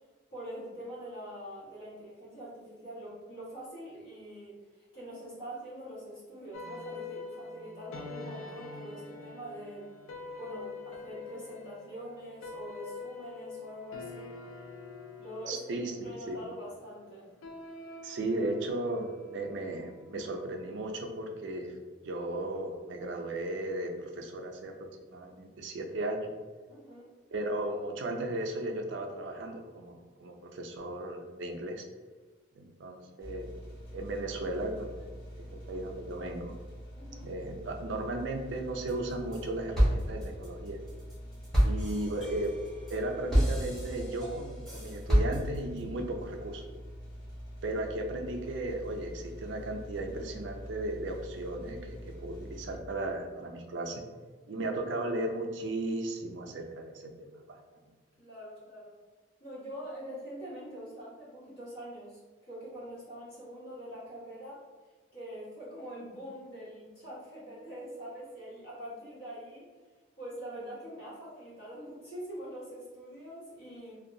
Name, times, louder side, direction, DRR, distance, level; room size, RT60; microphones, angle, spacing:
voice 1, 0.3-9.9 10.4-14.4 15.2-15.6 16.0-17.3 26.7-27.1 36.9-37.3 58.2-59.0 59.4-64.6 65.1-69.7 70.2-73.9, equal, 70° left, -8 dB, 1.4 m, -44 dB
sound 1, 6.5-21.0, left 3 dB, 85° left, 0.3 m, -45 dB
voice 2, 15.5-16.4 18.0-21.8 22.0-26.3 27.3-31.8 32.6-33.5 33.9-36.5 37.2-40.8 41.6-42.5 42.9-46.6 47.6-54.0 54.5-57.6, right 1 dB, 65° right, 3 dB, 0.4 m, -36 dB
sound 2, 33.2-52.8, equal, 45° left, 0.7 m, -45 dB
sound 3, 38.9-39.4 39.7-45.8, equal, ahead, 0.8 m, -29 dB
2.6 x 2.2 x 2.6 m, 1.4 s
head